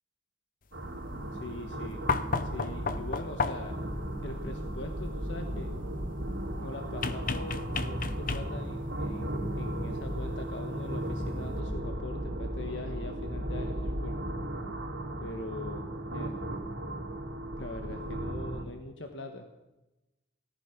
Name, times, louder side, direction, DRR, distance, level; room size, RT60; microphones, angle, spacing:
sound 1, 0.7-18.6, right 1 dB, 80° right, 3.4 m, -36 dB
voice 1, 1.3-2.1 2.4-3.8 4.2-5.7 6.6-14.4 15.2-16.4 17.6-19.6, left 2 dB, 70° left, 5 dB, 1.4 m, -42 dB
sound 2, 2.1-3.8 7.0-8.8 10.3-10.4, left 4 dB, 45° left, 0.9 m, -32 dB
17.5 x 13.5 x 6.0 m, 1.0 s
head